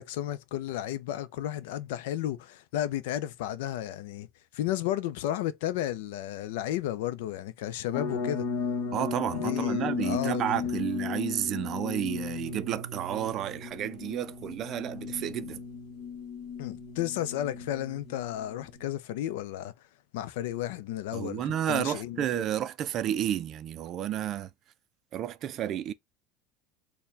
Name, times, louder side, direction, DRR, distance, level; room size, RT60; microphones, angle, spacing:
voice 1, 0.0-4.3 4.5-8.5 9.3-10.6 16.6-19.7 20.1-22.5, left 12 dB, 85° left, 0.4 m, -33 dB
sound 1, 7.9-18.9, left 5 dB, 60° left, 0.9 m, -35 dB
voice 2, 8.9-15.6 21.1-24.5 25.1-25.9, right 11 dB, 40° right, 0.4 m, -31 dB
4.5 x 2.2 x 3.3 m
cardioid pair, 150°, 0 cm